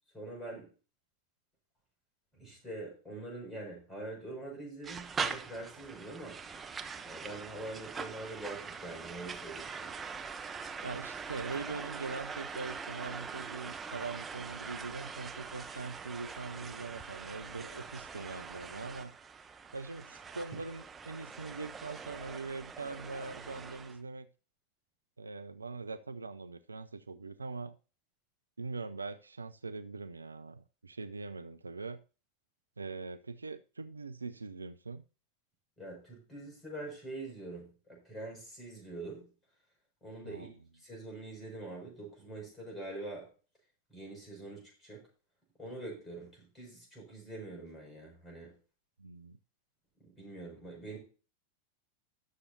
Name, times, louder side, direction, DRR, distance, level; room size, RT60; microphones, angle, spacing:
voice 1, 0.1-0.7 2.3-6.4 7.1-10.0 10.3-10.5 35.8-39.3 40.0-40.5 40.7-43.3 43.9-45.0 45.6-48.5 50.2-51.0, right 2 dB, 10° left, -2 dB, 6.5 m, -44 dB
sound 1, 4.8-24.0, right 5 dB, 15° right, 1.0 m, -43 dB
voice 2, 10.8-19.1 19.7-24.3 25.2-27.7 28.6-32.0 32.8-35.0 40.2-40.5 49.0-49.4, right 4 dB, 80° right, 11 dB, 0.5 m, -42 dB
19.0 x 6.9 x 2.8 m, 0.34 s
figure-of-eight pair, 90°, 0 cm